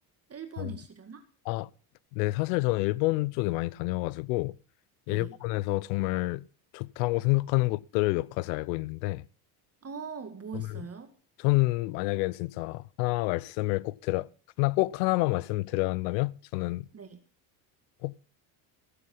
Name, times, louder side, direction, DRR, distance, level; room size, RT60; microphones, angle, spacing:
voice 1, 0.3-1.2 5.1-5.4 9.8-11.1 16.9-17.2, right 5 dB, 30° right, 1.9 m, -41 dB
voice 2, 2.1-4.5 5.1-6.4 6.7-9.2 10.5-10.8 11.4-14.3 14.6-16.9 18.0-18.1, left 21 dB, 85° left, 0.8 m, -28 dB
15.5 x 9.3 x 5.4 m
supercardioid pair, 95°, 48 cm